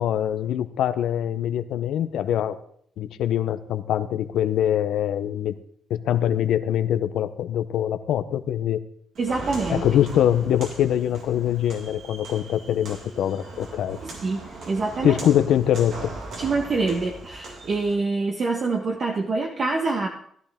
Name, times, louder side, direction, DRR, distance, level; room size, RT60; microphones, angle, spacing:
voice 1, 0.0-2.6 3.0-5.5 5.9-8.8 9.7-14.0 15.0-16.1, left 10 dB, 80° left, 9 dB, 0.8 m, -23 dB
Walk footsteps, 9.1-17.9, right 3 dB, 70° right, 4.2 m, -39 dB
voice 2, 9.2-9.9 14.0-14.4 14.7-15.2 16.4-20.1, right 3 dB, 45° right, 2 dB, 1.4 m, -25 dB
16.0 x 11.5 x 3.6 m, 0.63 s
cardioid pair, 90°, 0 cm